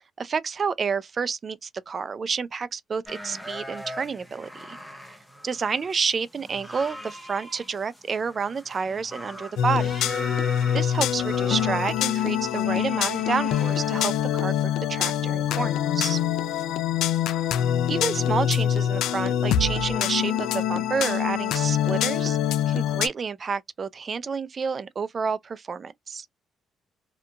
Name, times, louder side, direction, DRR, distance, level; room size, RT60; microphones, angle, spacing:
voice 1, 0.2-4.8 5.4-10.1 10.7-14.5 14.9-16.2 17.9-22.4 22.7-26.3, right 5 dB, 40° right, 0.4 m, -29 dB
sound 1, 3.1-14.2, equal, 5° left, 0.7 m, -41 dB
sound 2, 9.6-23.1, left 10 dB, 90° left, 0.3 m, -25 dB
2.8 x 2.4 x 2.2 m
cardioid pair, 90°, 0 cm